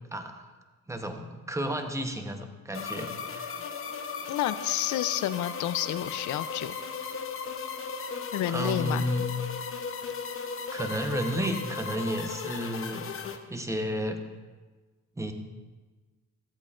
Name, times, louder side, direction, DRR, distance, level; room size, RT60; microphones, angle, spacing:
voice 1, 0.9-3.6 8.5-9.3 10.7-13.1 13.5-14.3 15.2-15.3, equal, 10° right, 6 dB, 0.9 m, -32 dB
sound 1, 2.7-13.4, left 5 dB, 45° left, 0.8 m, -36 dB
voice 2, 4.3-6.8 8.3-9.0, left 12 dB, 75° left, 14 dB, 0.5 m, -30 dB
13.5 x 8.1 x 2.5 m, 1.3 s
cardioid pair, 90°, 30 cm